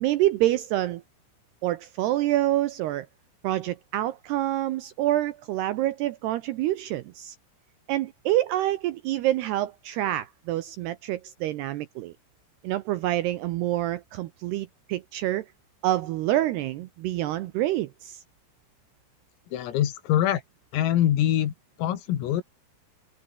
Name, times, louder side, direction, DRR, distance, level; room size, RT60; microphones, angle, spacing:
voice 1, 0.0-1.0 1.6-3.1 3.4-7.4 7.9-12.1 12.6-15.5 15.8-18.2, right 14 dB, 80° right, 2.3 m, -27 dB
voice 2, 19.5-20.4 20.7-21.5 21.8-22.4, left 11 dB, 85° left, 5.1 m, -24 dB
omnidirectional pair, 5.9 m